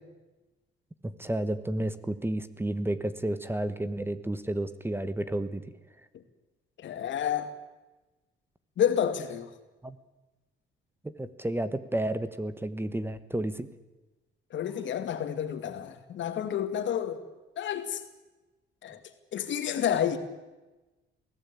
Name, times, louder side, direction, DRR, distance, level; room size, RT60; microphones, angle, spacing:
voice 1, 1.0-5.7 9.8-10.0 11.0-13.7, right 1 dB, 10° right, 1.3 m, -31 dB
voice 2, 6.8-7.5 8.8-9.5 14.5-17.2 17.6-18.0 18.8-19.0 19.3-20.2, left 9 dB, 70° left, 2.3 m, -29 dB
23.0 x 16.5 x 8.5 m
cardioid pair, 90°, 20 cm